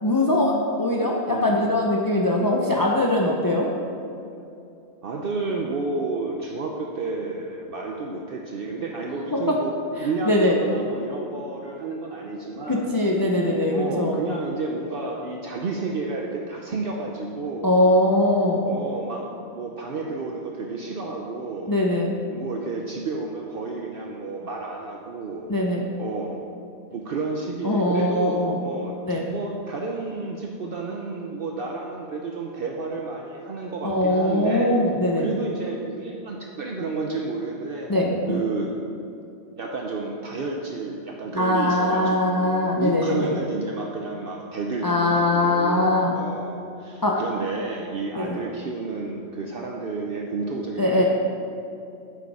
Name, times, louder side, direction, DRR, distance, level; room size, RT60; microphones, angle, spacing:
voice 1, 0.0-3.7 9.3-9.6 10.3-10.6 12.7-14.2 17.6-18.6 21.7-22.1 25.5-25.9 27.6-28.6 29.1-29.3 33.8-35.3 37.9-38.4 41.3-43.4 44.8-46.2 47.0-47.2 48.1-48.4 50.8-51.0, left 1 dB, 25° left, -1 dB, 0.6 m, -21 dB
voice 2, 1.3-1.8 5.0-9.7 10.0-12.9 13.7-17.7 18.6-19.3 19.5-21.7 22.3-25.5 26.0-26.4 26.9-28.9 29.3-34.7 35.2-37.9 38.3-38.7 39.6-51.0, right 3 dB, 60° right, 0 dB, 0.9 m, -31 dB
8.3 x 8.2 x 4.8 m, 2.7 s
omnidirectional pair, 1.2 m